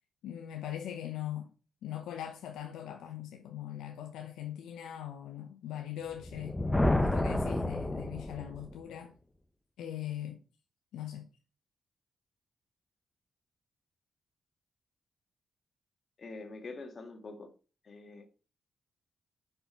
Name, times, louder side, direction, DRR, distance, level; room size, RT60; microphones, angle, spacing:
voice 1, 0.2-1.5 1.8-6.6 6.9-9.1 9.8-10.4 10.9-11.3, left 11 dB, 85° left, 0.7 m, -40 dB
Thunder, 6.1-8.8, left 1 dB, 15° left, 0.8 m, -30 dB
voice 2, 16.2-17.5 17.8-18.3, left 3 dB, 50° left, 1.9 m, -45 dB
5.9 x 5.6 x 5.6 m
supercardioid pair, 60°, 0 cm